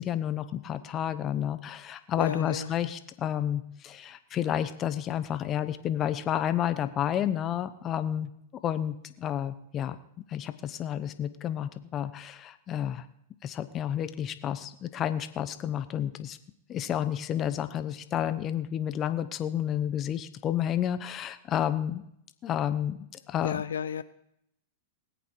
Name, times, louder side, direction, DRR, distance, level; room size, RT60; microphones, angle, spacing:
voice 1, 0.0-8.3 8.6-10.0 10.3-13.1 13.4-16.4 16.7-22.0 22.4-23.0 23.3-23.6, left 10 dB, 30° left, 11 dB, 0.9 m, -30 dB
voice 2, 2.2-2.9 23.4-24.0, left 7 dB, 90° left, 13 dB, 0.5 m, -33 dB
19.5 x 8.4 x 4.7 m, 0.75 s
hypercardioid pair, 115°, 0 cm